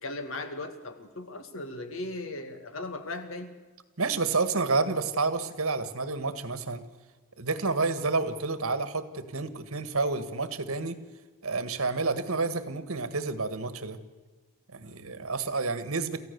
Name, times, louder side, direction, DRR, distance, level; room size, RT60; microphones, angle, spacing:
voice 1, 0.0-3.5, left 2 dB, 65° left, 8 dB, 2.2 m, -37 dB
voice 2, 4.0-6.9 7.4-11.0 11.4-14.0 14.7-16.2, right 3 dB, 75° right, 11 dB, 1.7 m, -29 dB
28.0 x 15.0 x 6.9 m, 1.3 s
head